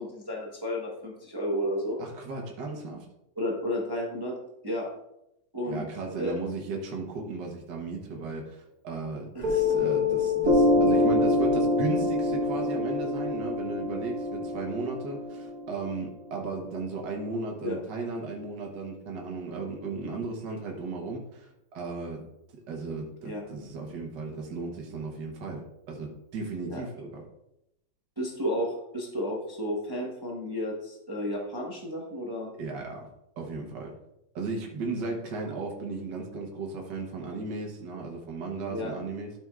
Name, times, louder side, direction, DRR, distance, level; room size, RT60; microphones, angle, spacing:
voice 1, 0.0-2.0 3.4-4.3 4.6-4.9 5.5-5.8 6.1-6.4 9.3-9.6 17.6-17.7 23.2-23.4 26.7-26.8 28.2-32.5 38.7-38.9, equal, 15° right, -3 dB, 1.0 m, -32 dB
voice 2, 2.0-3.1 5.7-22.2 22.7-27.2 32.6-33.1 33.4-33.9 34.4-39.3, right 3 dB, 70° right, 0 dB, 1.8 m, -35 dB
Piano, 9.4-16.5, left 2 dB, 55° right, 1.3 m, -25 dB
12.5 x 6.1 x 2.4 m, 0.85 s
omnidirectional pair, 2.0 m